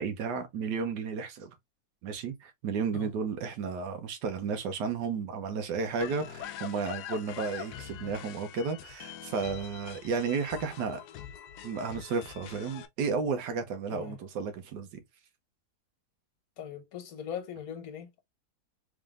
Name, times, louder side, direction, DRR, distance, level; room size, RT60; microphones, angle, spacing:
voice 1, 0.0-1.5 2.0-11.0 11.6-15.0, right 5 dB, 85° right, 1.4 m, -33 dB
sound 1, 6.0-12.9, left 10 dB, 80° left, 1.2 m, -43 dB
voice 2, 16.6-18.2, left 8 dB, 65° left, 1.4 m, -40 dB
3.7 x 3.6 x 2.4 m
omnidirectional pair, 1.7 m